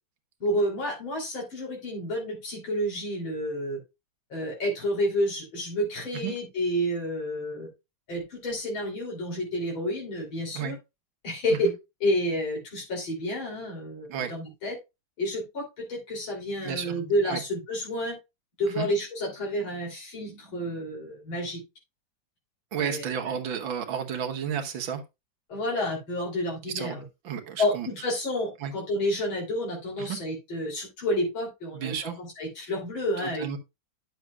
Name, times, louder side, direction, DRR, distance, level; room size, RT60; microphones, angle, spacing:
voice 1, 0.4-3.8 4.3-7.7 8.1-10.8 11.2-11.7 12.0-14.7 15.2-18.1 18.6-21.6 22.8-23.3 25.5-27.0 27.6-33.5, equal, 90° left, 3.9 m, -30 dB
voice 2, 16.6-16.9 17.3-17.4 18.8-18.9 22.7-25.0 26.8-27.0 27.2-27.9 28.6-28.7 30.0-30.2 31.7-32.2 33.2-33.6, right 8 dB, 80° right, 2.0 m, -32 dB
10.5 x 7.1 x 2.3 m
omnidirectional pair, 2.1 m